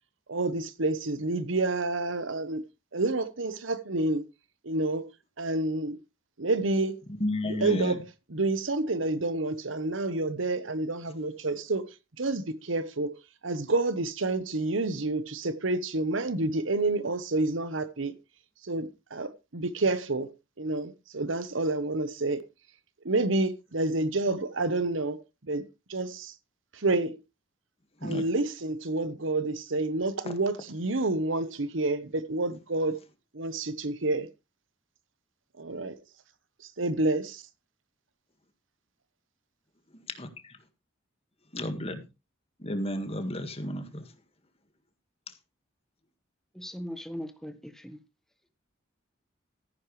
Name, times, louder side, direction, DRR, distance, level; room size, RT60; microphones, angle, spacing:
voice 1, 0.3-2.6 2.9-4.3 4.6-5.1 5.4-6.0 6.4-7.0 7.4-13.1 13.4-18.1 18.6-22.4 23.0-25.6 25.9-26.3 26.7-27.2 28.0-33.0 33.3-34.3 35.6-36.0 36.8-37.4, right 2 dB, 75° right, 1.1 m, -29 dB
voice 2, 7.2-8.0 28.0-28.2 39.9-40.6 41.5-42.0 42.6-44.0, left 1 dB, 30° left, 1.8 m, -32 dB
voice 3, 46.5-48.0, equal, ahead, 1.4 m, -39 dB
14.0 x 10.5 x 3.3 m
head